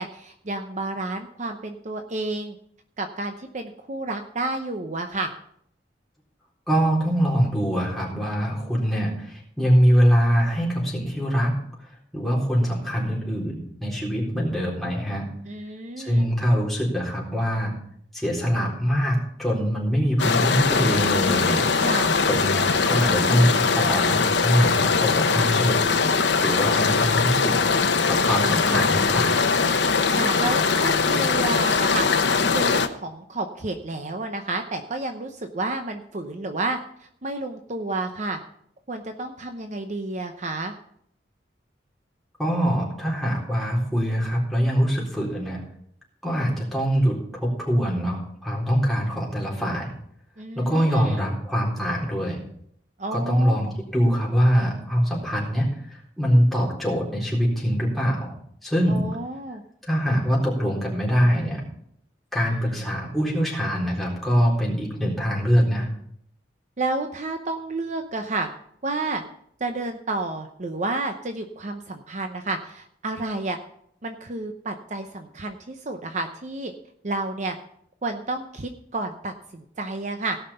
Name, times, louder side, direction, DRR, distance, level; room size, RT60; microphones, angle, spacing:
voice 1, 0.0-2.6 3.0-5.3 15.5-16.2 21.8-22.2 26.8-27.1 30.1-32.1 32.5-38.4 38.9-40.7 50.4-51.2 53.0-53.6 58.9-59.6 62.5-62.8 66.8-68.5 68.8-69.2 69.6-73.6 74.0-76.7 77.0-77.6 78.0-80.4, right 2 dB, 45° right, 6 dB, 0.8 m, -30 dB
voice 2, 6.7-11.9 12.1-15.3 16.0-17.7 18.1-25.8 26.1-27.6 28.0-29.5 42.4-45.6 46.2-49.9 50.5-52.4 53.1-53.7 53.9-58.3 58.6-59.0 59.9-61.6 62.3-65.9, equal, ahead, -4 dB, 3.9 m, -23 dB
sound 1, 20.2-32.9, left 4 dB, 85° left, 0.9 m, -21 dB
17.0 x 5.9 x 5.6 m, 0.68 s
head